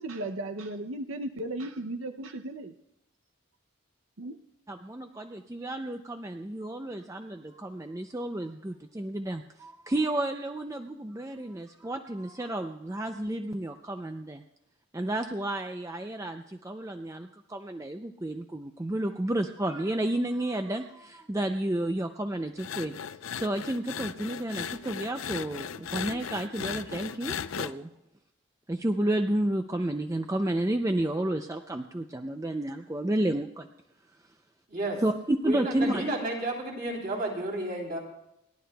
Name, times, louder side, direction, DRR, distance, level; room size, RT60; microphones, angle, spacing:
voice 1, 0.0-2.7 4.2-4.4, right 1 dB, 80° right, 8 dB, 0.6 m, -35 dB
voice 2, 4.7-14.4 14.9-23.0 23.3-27.9 28.7-33.7 35.0-36.0, right 1 dB, 15° right, 6 dB, 0.4 m, -31 dB
sound 1, 22.6-27.7, left 7 dB, 85° left, 0.5 m, -37 dB
voice 3, 34.7-35.0 35.4-38.0, right 1 dB, 45° right, -1 dB, 3.4 m, -32 dB
28.5 x 11.5 x 2.3 m, 0.86 s
head